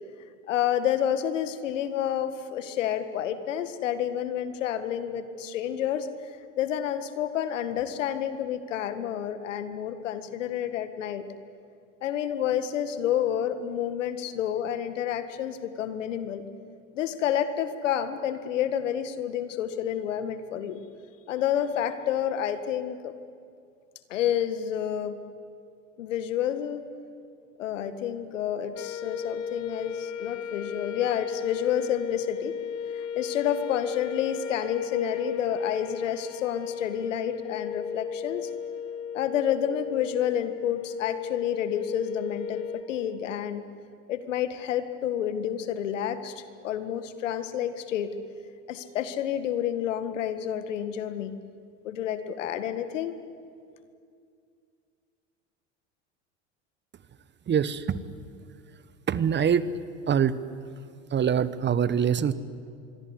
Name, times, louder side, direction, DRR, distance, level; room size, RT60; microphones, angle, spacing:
voice 1, 0.5-6.1 6.6-11.2 12.0-16.4 16.9-20.8 21.3-23.1 24.1-25.2 26.0-26.8 27.6-32.5 32.9-38.5 39.1-43.6 44.1-48.1 48.7-51.3 51.8-53.2, left 10 dB, 80° left, 11 dB, 1.9 m, -29 dB
sound 1, 28.8-42.8, left 7 dB, 40° left, 2.7 m, -35 dB
voice 2, 57.5-58.0 59.1-59.7 60.1-60.4 61.1-62.3, right 8 dB, 30° right, 16 dB, 1.2 m, -24 dB
26.0 x 22.5 x 9.9 m, 2.3 s
hypercardioid pair, 85°, 37 cm